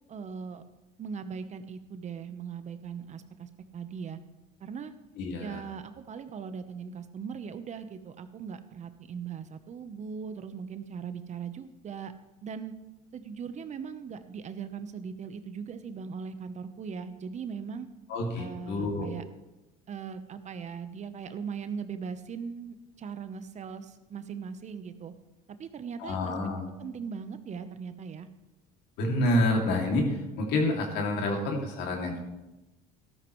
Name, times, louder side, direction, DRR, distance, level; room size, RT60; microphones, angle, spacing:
voice 1, 0.1-0.6 1.0-4.2 4.6-4.9 5.4-12.1 12.4-12.7 13.1-17.9 18.4-19.2 19.9-25.1 25.6-26.2 26.4-26.5 26.8-28.3, right 6 dB, 40° right, 10 dB, 0.9 m, -39 dB
voice 2, 5.2-5.6 18.1-19.1 26.0-26.7 29.0-32.2, left 1 dB, 70° left, 1 dB, 2.6 m, -28 dB
13.0 x 12.5 x 3.2 m, 1.0 s
supercardioid pair, 85°, 18 cm